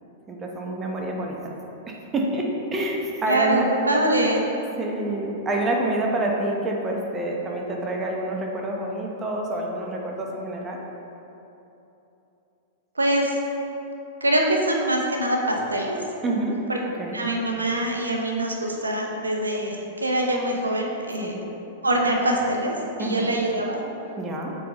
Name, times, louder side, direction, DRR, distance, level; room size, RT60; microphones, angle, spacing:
voice 1, 0.3-1.5 1.9-3.7 4.8-10.8 16.2-16.6 17.0-17.1 21.2-21.4 23.0-23.4 24.2-24.6, right 2 dB, 20° right, 0 dB, 0.8 m, -27 dB
voice 2, 3.3-3.6 3.9-4.4 13.0-13.3 14.2-16.0 16.7-16.8 17.1-21.4 21.8-23.8, right 1 dB, 85° right, 0 dB, 0.7 m, -24 dB
8.2 x 3.9 x 3.0 m, 3.0 s
figure-of-eight pair, 100°, 0 cm